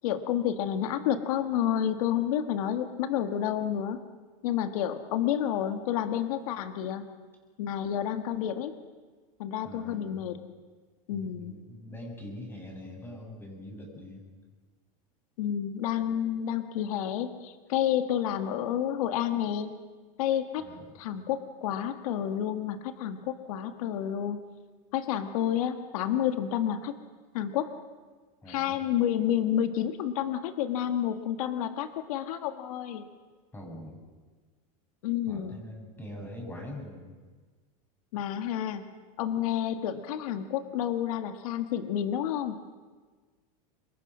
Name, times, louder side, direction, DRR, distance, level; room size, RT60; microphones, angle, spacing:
voice 1, 0.0-4.0 4.4-7.0 7.6-8.7 9.4-10.4 11.1-11.5 15.4-19.7 20.2-20.7 21.0-24.4 24.9-26.9 27.3-27.7 28.5-33.1 35.0-35.6 38.1-38.8 39.2-42.6, left 10 dB, 75° left, 7 dB, 1.8 m, -30 dB
voice 2, 9.6-10.3 11.1-14.2 20.6-21.0 28.4-28.8 33.5-34.0 35.3-37.1, left 1 dB, 10° left, 1 dB, 7.4 m, -43 dB
26.5 x 22.5 x 6.3 m, 1.4 s
supercardioid pair, 135°, 19 cm